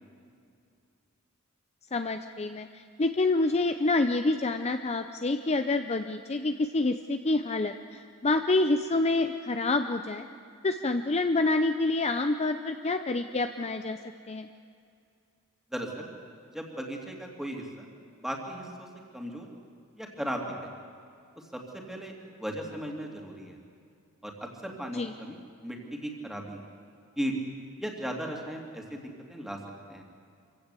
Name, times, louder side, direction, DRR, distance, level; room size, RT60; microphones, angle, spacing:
voice 1, 1.9-10.3 10.6-14.0 14.3-14.5 24.9-25.1, left 2 dB, 30° left, 7 dB, 0.6 m, -27 dB
voice 2, 15.7-16.1 16.5-17.9 18.2-18.9 19.1-19.5 20.0-20.7 21.5-21.6 21.9-22.1 22.4-23.6 24.2-26.6 27.2-27.3 27.8-29.6 29.9-30.0, equal, ahead, 0 dB, 2.7 m, -36 dB
25.0 x 16.5 x 8.3 m, 2.4 s
head